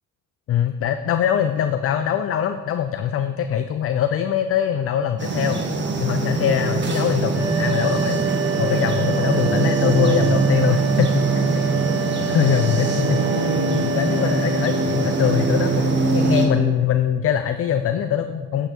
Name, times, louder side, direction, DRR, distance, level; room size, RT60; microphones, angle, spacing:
voice 1, 0.5-5.6 6.0-8.2 8.6-11.3 11.7-11.8 12.3-18.7, left 9 dB, 50° left, 9 dB, 0.4 m, -22 dB
sound 1, 5.2-16.5, right 3 dB, 40° right, 1.3 m, -22 dB
sound 2, 7.3-15.8, right 7 dB, 10° right, 1.6 m, -28 dB
8.5 x 5.6 x 4.4 m, 1.6 s
cardioid pair, 90°, 30 cm